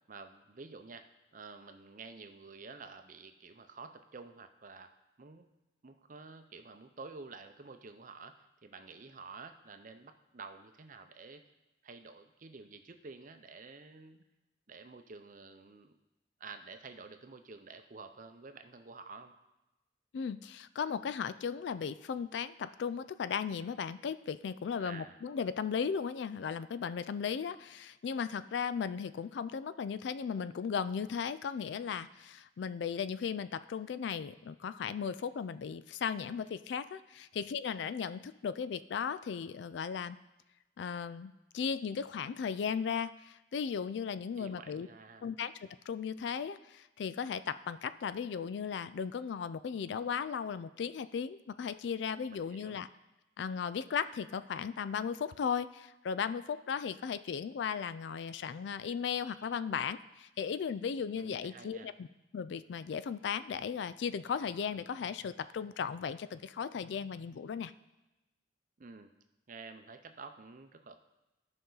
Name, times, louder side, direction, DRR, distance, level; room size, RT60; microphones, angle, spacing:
voice 1, 0.1-4.9 5.2-5.5 5.8-11.4 11.8-14.2 14.7-16.0 16.4-19.3 24.8-25.2 37.3-37.4 44.4-45.3 52.3-52.8 61.1-61.9 68.8-69.1 69.5-71.0, right 4 dB, 45° right, 7 dB, 0.6 m, -50 dB
voice 2, 20.1-40.2 40.8-44.9 45.2-52.9 53.4-62.1 62.3-67.7, left 6 dB, 65° left, 14 dB, 0.3 m, -36 dB
14.0 x 5.4 x 3.9 m, 1.0 s
head